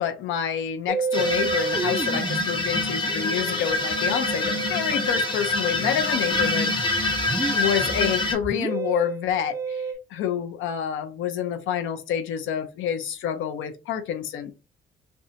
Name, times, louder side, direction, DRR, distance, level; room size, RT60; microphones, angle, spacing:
voice 1, 0.0-7.1 7.5-9.8 10.1-14.5, left 9 dB, 80° left, 0.5 m, -28 dB
Musical instrument, 0.9-9.9, right 5 dB, 15° right, 0.3 m, -32 dB
sound 1, 1.1-8.3, left 2 dB, 25° left, 0.8 m, -26 dB
2.6 x 2.1 x 2.7 m
cardioid pair, 90°, 20 cm